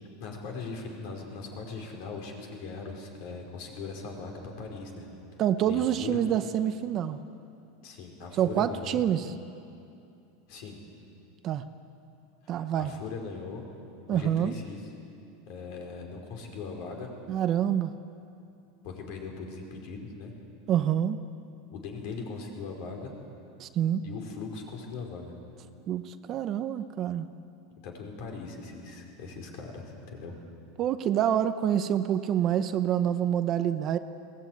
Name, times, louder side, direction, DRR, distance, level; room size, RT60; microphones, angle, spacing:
voice 1, 0.2-5.1 5.6-6.2 7.8-9.0 10.5-10.8 12.4-13.6 14.1-14.9 15.5-17.1 18.8-20.3 21.7-23.1 24.0-25.3 27.8-30.3, left 4 dB, 55° left, 2 dB, 4.8 m, -40 dB
voice 2, 5.4-7.2 8.4-9.3 11.4-11.6 12.5-12.9 14.1-14.5 17.3-17.9 20.7-21.2 23.6-24.0 25.9-27.3 30.8-34.0, right 10 dB, 30° right, 10 dB, 0.7 m, -27 dB
21.5 x 18.5 x 9.3 m, 2.7 s
supercardioid pair, 155°, 0 cm